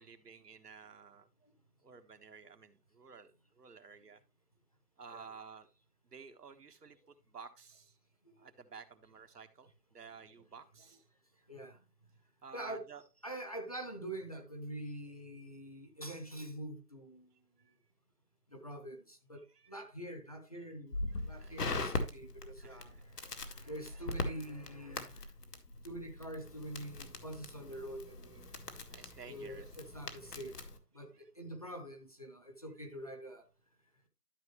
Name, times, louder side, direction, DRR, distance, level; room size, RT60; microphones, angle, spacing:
voice 1, 0.0-1.3 1.8-4.2 5.0-5.7 6.1-8.0 8.4-11.0 12.4-13.0 17.6-17.7 19.5-19.8 21.4-21.9 22.6-23.0 28.9-29.7 30.1-30.6 31.1-31.2, right 5 dB, 75° right, 1.4 m, -53 dB
voice 2, 11.5-11.8 12.5-12.9 13.2-17.3 18.5-21.0 21.2-25.3 25.8-28.5 29.2-30.5 30.9-33.5, right 1 dB, 25° left, 0.8 m, -45 dB
Crackle, 20.9-30.8, left 2 dB, 75° left, 1.8 m, -41 dB
12.5 x 5.2 x 3.1 m
hypercardioid pair, 170°, 47 cm